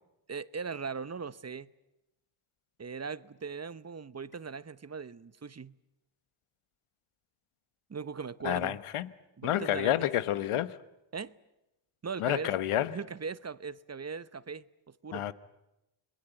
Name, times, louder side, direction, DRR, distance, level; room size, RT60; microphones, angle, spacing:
voice 1, 0.3-1.7 2.8-5.7 7.9-8.8 9.4-10.1 11.1-11.4 12.0-12.5 12.9-15.3, right 5 dB, 30° right, 0.9 m, -39 dB
voice 2, 8.4-9.1 9.4-10.8 12.2-13.0 15.1-15.3, left 12 dB, 85° left, 1.1 m, -29 dB
27.5 x 21.5 x 9.0 m
cardioid pair, 65°, 50 cm